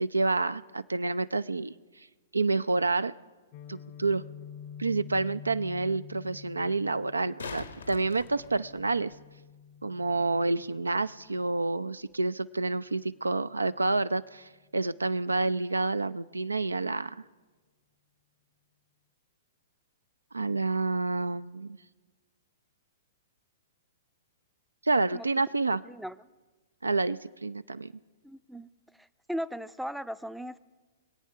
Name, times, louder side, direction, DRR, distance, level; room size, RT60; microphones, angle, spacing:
voice 1, 0.0-1.7 2.3-3.1 3.7-4.2 4.8-9.1 9.8-17.2 20.3-21.8 24.8-25.8 26.8-27.9, right 3 dB, 85° right, 15 dB, 0.3 m, -28 dB
Guitar, 3.5-11.4, left 8 dB, 40° left, 0.6 m, -48 dB
sound 1, 7.0-9.2 12.0-12.1, left 4 dB, 80° left, 1.1 m, -43 dB
voice 2, 28.2-28.7 29.0-30.6, equal, ahead, 14 dB, 0.4 m, -37 dB
24.0 x 8.6 x 5.6 m, 1.3 s
figure-of-eight pair, 110°, 0 cm